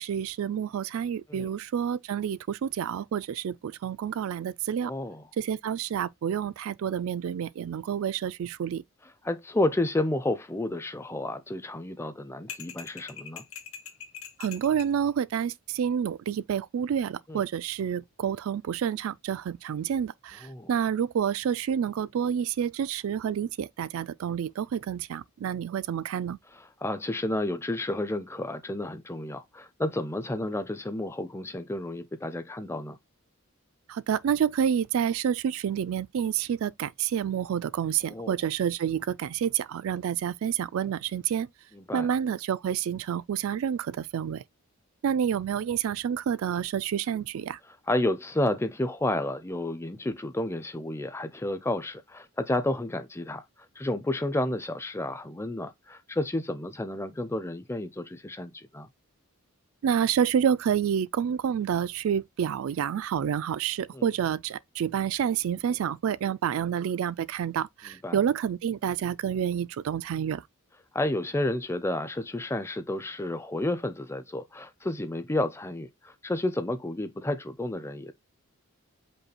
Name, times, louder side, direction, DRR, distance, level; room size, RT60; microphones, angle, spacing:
voice 1, 0.0-4.9 5.4-8.8 14.4-26.4 33.9-41.5 41.9-44.4 45.0-47.6 59.8-70.4, right 8 dB, 70° right, 0.3 m, -29 dB
voice 2, 4.8-5.2 9.2-13.4 17.3-17.5 20.4-20.7 26.5-33.0 38.1-38.4 41.7-42.1 47.9-53.4 53.8-58.9 63.9-64.0 67.9-68.2 70.9-78.1, left 1 dB, 10° left, 0.5 m, -31 dB
sound 1, 12.5-15.0, left 8 dB, 65° left, 1.2 m, -42 dB
5.3 x 2.3 x 4.2 m
head